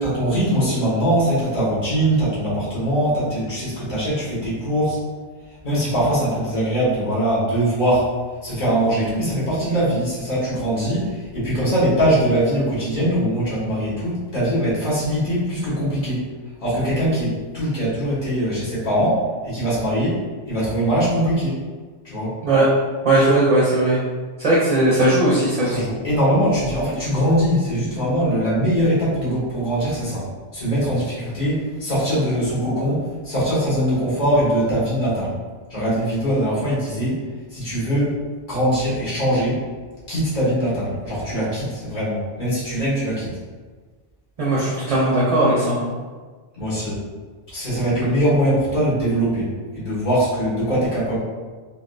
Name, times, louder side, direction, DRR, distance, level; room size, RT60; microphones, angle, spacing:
voice 1, 0.0-5.0 5.6-8.1 8.4-16.2 16.6-20.2 20.5-21.5 22.0-22.3 25.6-30.2 30.5-35.3 35.7-37.2 37.5-38.1 38.5-39.6 40.1-43.3 46.5-47.0 47.5-49.5 49.7-51.2, equal, 40° left, -10 dB, 1.4 m, -21 dB
voice 2, 23.0-24.0 24.4-25.8 44.4-45.9, right 1 dB, 40° right, -7 dB, 0.6 m, -18 dB
3.7 x 2.2 x 2.5 m, 1.4 s
omnidirectional pair, 1.1 m